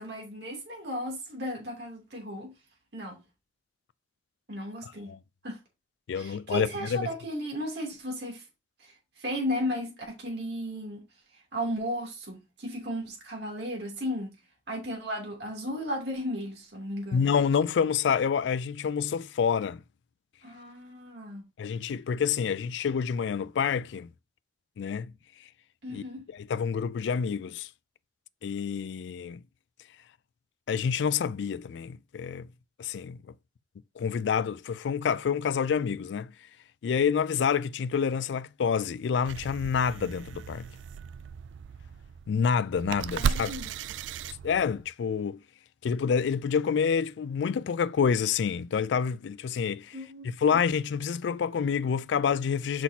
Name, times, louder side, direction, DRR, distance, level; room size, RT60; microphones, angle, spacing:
voice 1, 0.0-2.5 2.9-3.2 4.5-5.1 5.4-5.6 6.1-8.4 8.8-8.9 9.2-11.0 11.5-14.3 14.7-17.3 20.4-21.5 25.8-26.2 43.1-43.7 49.9-50.3, equal, 60° right, 2.8 m, -35 dB
voice 2, 4.8-5.2 6.1-7.1 17.1-19.8 21.6-24.1 24.8-25.1 25.9-26.0 26.3-27.7 28.4-29.4 30.7-32.5 32.8-33.2 34.0-36.3 36.8-40.7 42.3-43.5 44.4-45.4 45.8-52.8, left 6 dB, 70° left, 0.3 m, -28 dB
sound 1, 39.2-44.9, right 7 dB, 80° right, 0.3 m, -35 dB
6.0 x 5.8 x 2.8 m
head